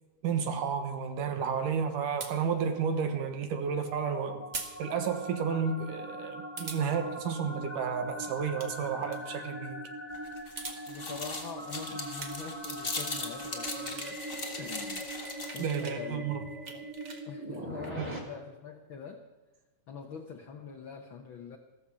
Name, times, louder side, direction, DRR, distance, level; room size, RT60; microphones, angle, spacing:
voice 1, 0.2-4.4 4.8-9.8 15.6-16.4 17.6-18.2, right 6 dB, 85° right, 7 dB, 2.9 m, -32 dB
sound 1, 2.2-2.3 4.5-4.7 5.1-5.2 6.6-6.8 8.4-8.7 9.0-9.2 10.4-10.8 11.8-12.6 13.1-14.2 14.5-16.0 16.4-17.9, right 4 dB, 60° right, 0.7 m, -43 dB
sound 2, 3.1-18.2, right 1 dB, 5° right, 2.5 m, -42 dB
Medicine sachets, 10.1-15.8, left 3 dB, 30° left, 1.1 m, -39 dB
voice 2, 10.9-14.2 14.6-15.1 15.5-16.2 16.6-16.9 17.3-19.2 19.9-21.6, left 6 dB, 80° left, 5 dB, 1.1 m, -44 dB
14.5 x 14.0 x 5.6 m, 1.2 s
omnidirectional pair, 3.7 m